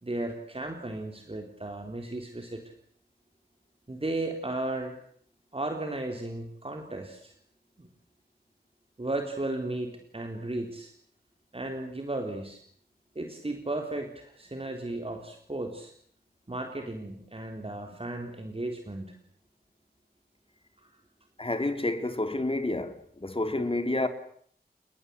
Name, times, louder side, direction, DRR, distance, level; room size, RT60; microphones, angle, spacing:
voice 1, 0.0-2.6 3.9-4.9 5.5-7.3 7.8-7.9 9.0-10.9 11.5-12.6 13.2-15.9 16.5-19.1, right 2 dB, 35° right, 3.9 m, -35 dB
voice 2, 21.4-24.1, left 2 dB, 35° left, 3.7 m, -29 dB
30.0 x 21.0 x 8.4 m
wide cardioid pair, 60°, 17 cm